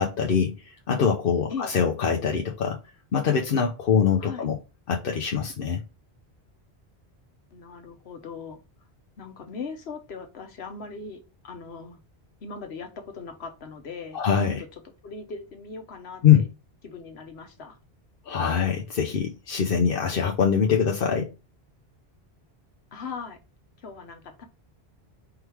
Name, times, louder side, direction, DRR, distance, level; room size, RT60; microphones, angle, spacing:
voice 1, 0.0-2.8 3.1-4.6 4.9-5.8 14.1-14.6 16.2-16.4 18.3-21.3, left 7 dB, 60° left, 0.9 m, -23 dB
voice 2, 7.5-8.6 9.2-12.0 12.4-14.2 14.4-14.7 15.0-16.5 16.8-17.8 22.9-23.4 23.8-24.4, left 5 dB, 75° left, 1.2 m, -39 dB
4.7 x 3.1 x 3.3 m
omnidirectional pair, 1.1 m